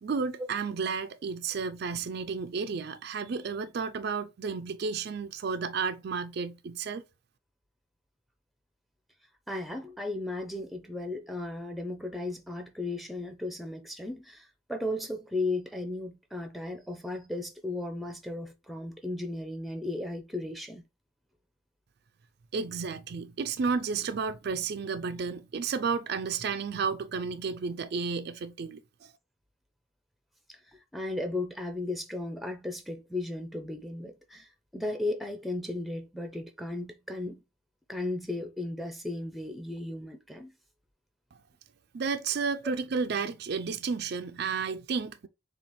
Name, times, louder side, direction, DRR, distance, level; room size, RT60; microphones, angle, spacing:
voice 1, 0.0-7.0 22.5-29.1 41.9-45.3, right 5 dB, 50° right, 0.4 m, -32 dB
voice 2, 9.5-20.8 30.5-37.4 37.9-40.5, left 2 dB, ahead, 0.6 m, -35 dB
6.8 x 2.4 x 3.1 m
head